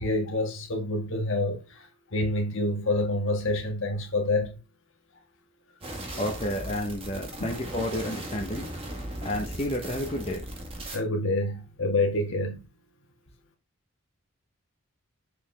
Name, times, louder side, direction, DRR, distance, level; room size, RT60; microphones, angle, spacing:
voice 1, 0.0-1.9 2.1-4.6 7.5-7.6 10.9-12.6, left 2 dB, 65° left, 1.9 m, -27 dB
sound 1, 5.8-11.0, right 1 dB, 25° right, 1.9 m, -37 dB
voice 2, 6.2-8.7 9.2-10.4, left 1 dB, 30° left, 1.1 m, -31 dB
6.8 x 5.3 x 3.5 m
head